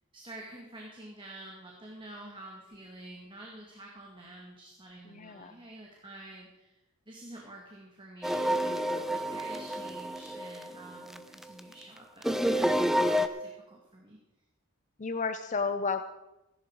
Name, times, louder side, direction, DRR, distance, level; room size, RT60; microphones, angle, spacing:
voice 1, 0.1-6.8 7.1-14.2, right 1 dB, 25° right, -2 dB, 2.1 m, -48 dB
voice 2, 5.1-5.5 15.0-16.0, left 4 dB, 35° left, 9 dB, 0.6 m, -32 dB
sound 1, 8.2-11.6 12.2-13.3, equal, ahead, 0.6 m, -29 dB
16.5 x 11.0 x 4.8 m, 0.96 s
head